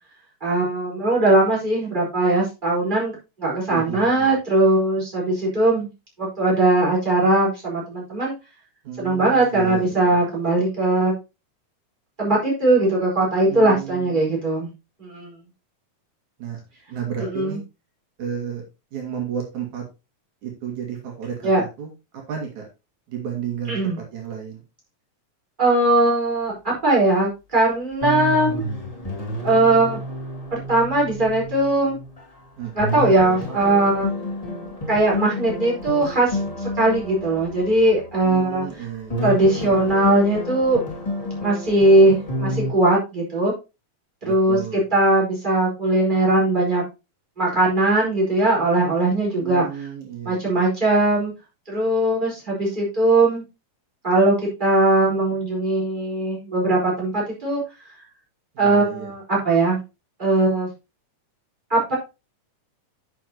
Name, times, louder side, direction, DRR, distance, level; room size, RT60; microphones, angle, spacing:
voice 1, 0.4-5.9 6.2-8.3 9.0-11.1 12.2-14.7 15.0-15.3 17.3-17.6 21.4-21.6 23.7-24.0 25.6-28.7 29.4-30.0 30.5-32.0 32.8-34.1 34.9-36.4 36.8-38.6 39.2-40.8 41.4-43.5 44.2-46.8 47.4-49.6 50.2-51.3 51.7-53.4 54.0-54.3 54.6-57.6 58.6-59.8 60.2-60.7 61.7-61.9, right 2 dB, 15° right, -4 dB, 4.7 m, -19 dB
voice 2, 3.7-4.3 8.8-10.2 13.5-14.3 16.4-16.6 16.9-17.6 18.2-18.6 18.9-19.9 20.4-22.6 23.1-24.6 32.6-33.1 38.2-39.3 44.2-44.9 49.4-50.6 58.6-59.1, right 8 dB, 75° right, 1 dB, 3.6 m, -33 dB
sound 1, 27.6-27.7 28.0-32.3 32.6-38.7 39.1-42.7, left 1 dB, 15° left, 2.1 m, -30 dB
10.0 x 7.1 x 3.0 m, 0.26 s
omnidirectional pair, 3.4 m